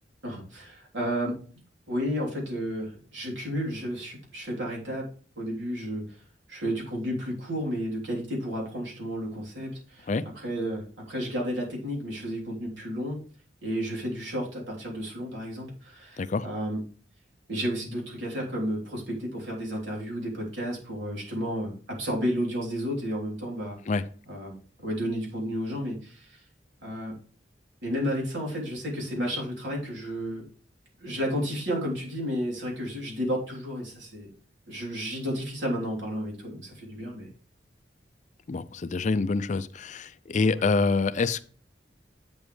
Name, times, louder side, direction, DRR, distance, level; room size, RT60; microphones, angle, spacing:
voice 1, 0.2-1.4 1.9-5.1 5.4-6.0 6.5-13.2 13.6-16.8 17.5-23.8 24.3-26.4 26.8-27.1 27.8-30.4 31.0-34.3 34.7-37.3 40.5-40.7, equal, 85° right, -3 dB, 3.3 m, -32 dB
voice 2, 38.5-41.4, left 4 dB, 40° left, 14 dB, 0.4 m, -26 dB
8.1 x 7.2 x 3.2 m, 0.41 s
head